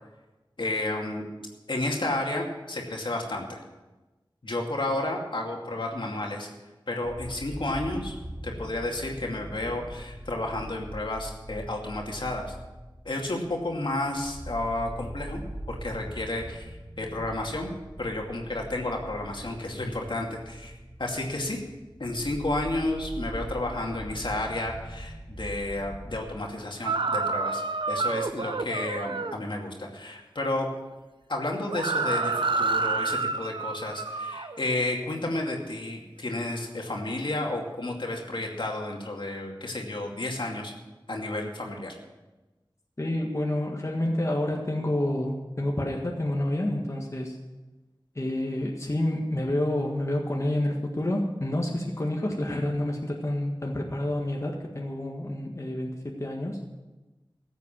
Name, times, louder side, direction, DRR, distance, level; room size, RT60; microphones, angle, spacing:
voice 1, 0.6-1.3 1.7-3.6 4.4-6.5 6.9-8.2 8.4-12.6 13.0-15.4 15.7-16.7 17.0-17.7 18.0-20.7 21.0-21.6 22.0-27.6 27.9-30.7 31.3-40.7 41.1-42.0, left 2 dB, 70° left, 0 dB, 2.4 m, -31 dB
sound 1, 7.0-26.2, right 1 dB, 40° right, 4.8 m, -42 dB
sound 2, 26.9-29.4 31.7-34.6, right 3 dB, 70° right, 0.7 m, -28 dB
voice 2, 43.0-47.4 48.1-56.6, left 1 dB, 35° left, 0 dB, 1.7 m, -29 dB
14.5 x 8.1 x 7.4 m, 1.1 s
wide cardioid pair, 55°, 9 cm